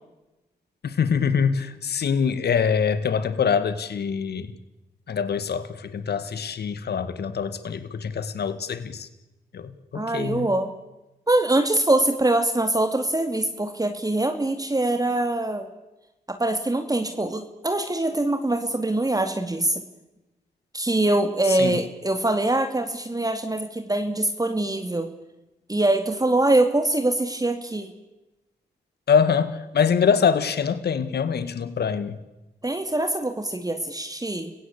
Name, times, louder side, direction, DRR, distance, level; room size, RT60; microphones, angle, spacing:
voice 1, 0.8-4.5 5.1-9.1 9.5-10.5 21.5-21.8 29.1-32.2, left 6 dB, 65° left, 12 dB, 2.0 m, -24 dB
voice 2, 9.9-10.7 11.3-15.7 16.3-19.8 20.7-25.1 25.7-27.9 32.6-34.5, right 2 dB, 20° right, 6 dB, 2.4 m, -23 dB
29.5 x 16.5 x 8.3 m, 1.0 s
supercardioid pair, 40°, 18 cm